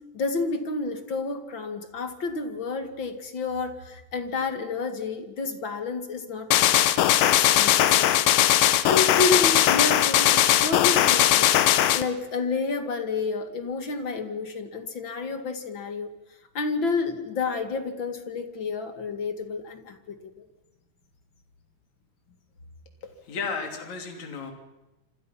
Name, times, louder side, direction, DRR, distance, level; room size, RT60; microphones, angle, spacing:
voice 1, 0.1-8.1 8.9-11.5 11.9-16.1 16.5-20.5, left 4 dB, 40° left, 7 dB, 2.3 m, -30 dB
sound 1, 6.5-12.0, left 12 dB, 80° left, 2.7 m, -19 dB
voice 2, 23.0-24.5, left 5 dB, 55° left, 4 dB, 4.3 m, -34 dB
27.5 x 26.5 x 5.9 m, 0.97 s
omnidirectional pair, 3.8 m